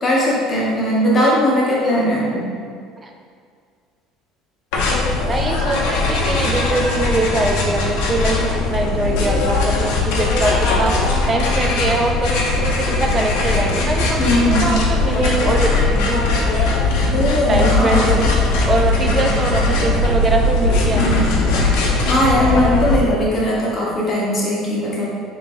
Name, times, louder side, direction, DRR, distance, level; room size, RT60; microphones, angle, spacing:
voice 1, 0.0-2.4 14.2-14.7 17.1-18.1 20.9-21.3 22.0-25.1, equal, 20° left, -6 dB, 0.9 m, -19 dB
sound 1, 4.7-23.0, left 3 dB, 85° left, 0.7 m, -19 dB
voice 2, 5.3-11.0 11.3-16.3 17.5-18.3 18.7-21.2, right 2 dB, 15° right, 2 dB, 0.3 m, -22 dB
3.9 x 3.0 x 3.6 m, 2.1 s
cardioid pair, 175°, 0 cm